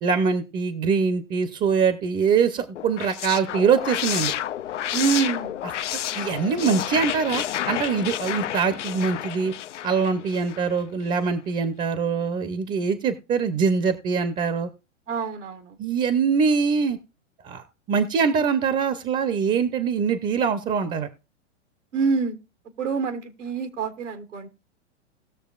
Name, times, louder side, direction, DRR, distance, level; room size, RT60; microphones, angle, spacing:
voice 1, 0.0-4.3 6.1-9.5 9.8-14.7 15.8-17.0 17.4-21.1, right 6 dB, 25° right, 11 dB, 0.7 m, -23 dB
sound 1, 2.8-10.8, left 11 dB, 80° left, 0.6 m, -30 dB
voice 2, 4.9-5.6 15.1-15.8 21.9-22.4 22.8-24.5, right 5 dB, 80° right, 7 dB, 1.6 m, -26 dB
19.0 x 6.7 x 2.4 m, 0.31 s
hypercardioid pair, 105°, 36 cm